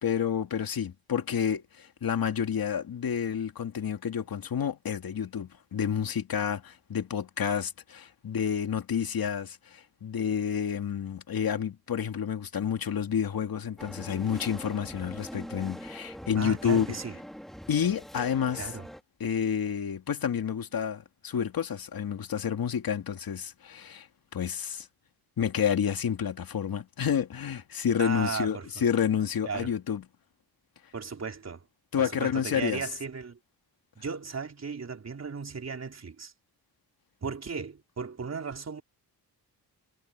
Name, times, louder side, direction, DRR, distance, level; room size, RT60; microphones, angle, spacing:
voice 1, 0.0-16.9 17.7-18.7 19.2-24.1 24.3-24.9 25.4-30.0 31.9-32.8, left 8 dB, 60° left, 2.5 m, -29 dB
sound 1, 13.8-19.0, equal, ahead, 2.3 m, -43 dB
voice 2, 16.4-17.1 18.5-18.9 28.0-28.7 29.5-29.7 30.9-31.6 32.0-33.4 34.0-36.3 37.2-38.8, right 5 dB, 40° right, 4.1 m, -36 dB
cardioid pair, 115°, 39 cm